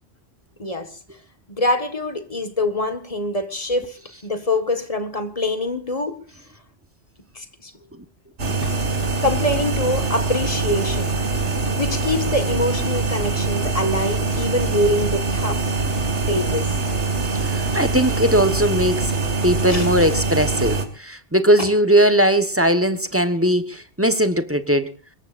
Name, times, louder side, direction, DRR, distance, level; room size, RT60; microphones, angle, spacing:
voice 1, 0.6-0.9 1.5-6.2 7.4-7.7 8.6-8.7 9.2-11.2 11.6-15.6 16.3-16.7 19.7-19.9 21.6-21.7, left 1 dB, 30° left, 1.8 m, -24 dB
sound 1, 8.4-20.9, right 3 dB, 90° right, 2.5 m, -23 dB
voice 2, 17.4-19.1 19.4-24.9, equal, 10° right, 1.2 m, -19 dB
25.0 x 21.5 x 2.6 m
omnidirectional pair, 1.1 m